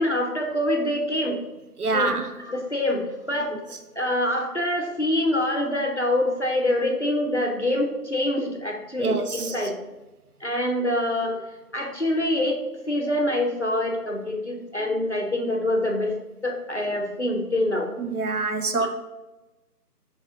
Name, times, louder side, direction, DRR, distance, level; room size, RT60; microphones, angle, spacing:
voice 1, 0.0-1.4 1.9-3.5 4.0-9.8 10.4-11.4 11.7-12.6 12.9-16.1 16.4-17.9 18.8-18.9, left 1 dB, 45° left, 1 dB, 0.6 m, -25 dB
voice 2, 1.8-2.3 9.0-9.5 18.0-18.9, right 3 dB, 65° right, 7 dB, 0.6 m, -25 dB
3.9 x 3.5 x 3.6 m, 1.1 s
figure-of-eight pair, 175°, 48 cm